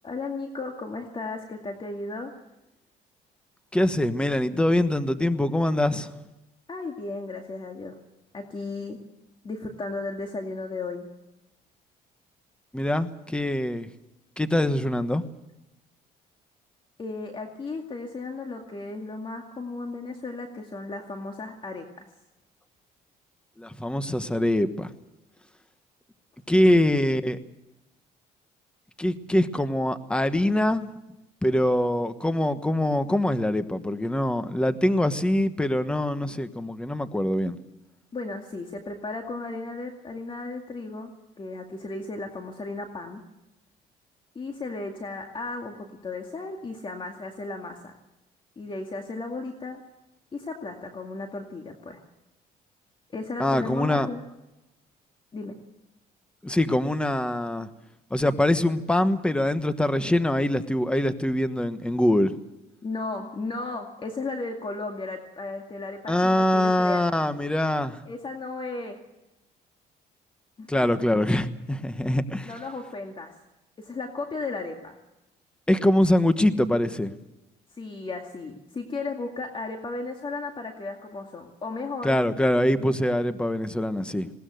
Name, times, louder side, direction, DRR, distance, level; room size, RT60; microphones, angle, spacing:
voice 1, 0.0-2.3 6.7-8.0 8.3-9.0 9.4-11.1 17.0-22.1 38.1-41.1 41.4-43.2 44.3-48.0 48.6-49.8 50.3-52.0 53.1-54.2 55.3-55.6 62.8-67.1 68.1-69.0 70.6-70.9 71.9-72.0 72.4-73.3 73.8-75.0 77.8-82.2, left 3 dB, 30° left, 3 dB, 2.3 m, -35 dB
voice 2, 3.7-6.1 12.7-13.9 14.4-15.2 23.6-24.9 26.5-27.4 29.0-30.9 31.4-37.6 53.4-54.1 56.4-57.7 58.1-62.4 66.1-68.0 70.7-72.5 75.7-77.1 82.0-84.3, left 1 dB, 5° left, 11 dB, 1.2 m, -24 dB
20.5 x 18.5 x 7.8 m, 0.93 s
cardioid pair, 110°, 17 cm